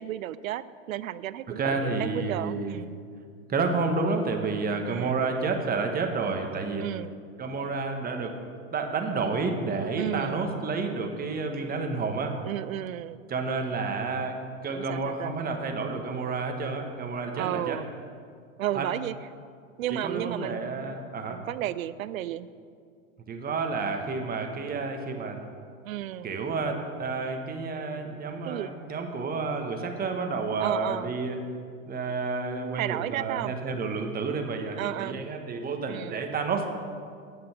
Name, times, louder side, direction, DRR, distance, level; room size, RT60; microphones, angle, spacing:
voice 1, 0.0-3.0 4.8-5.2 6.8-7.1 10.0-10.5 12.4-13.2 14.7-15.3 17.4-17.9 18.6-19.1 19.8-20.9 21.3-22.5 25.8-26.3 28.4-28.7 30.6-31.1 32.7-33.5 34.7-35.2 35.9-36.2, right 13 dB, 85° right, 17 dB, 0.5 m, -33 dB
voice 2, 1.5-2.8 3.5-6.9 7.4-8.4 8.7-12.3 13.3-17.8 18.7-18.9 19.9-21.4 23.3-25.4 26.2-31.4 31.9-36.7, right 4 dB, 20° right, 4 dB, 1.2 m, -30 dB
9.0 x 7.5 x 5.8 m, 2.2 s
hypercardioid pair, 105°, 40 cm